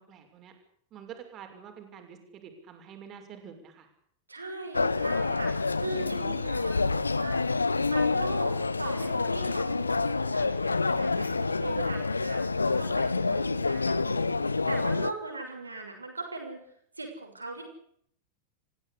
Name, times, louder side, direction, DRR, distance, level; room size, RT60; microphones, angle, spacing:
voice 1, 0.1-0.5 0.9-3.9 13.9-14.0, right 8 dB, 30° right, 5 dB, 6.1 m, -47 dB
voice 2, 4.3-7.5 7.9-16.6 17.0-17.6, right 3 dB, 80° right, 3 dB, 6.4 m, -39 dB
sound 1, 4.7-15.1, left 3 dB, 80° left, 0.8 m, -28 dB
27.5 x 16.0 x 8.4 m, 0.69 s
figure-of-eight pair, 90°, 0 cm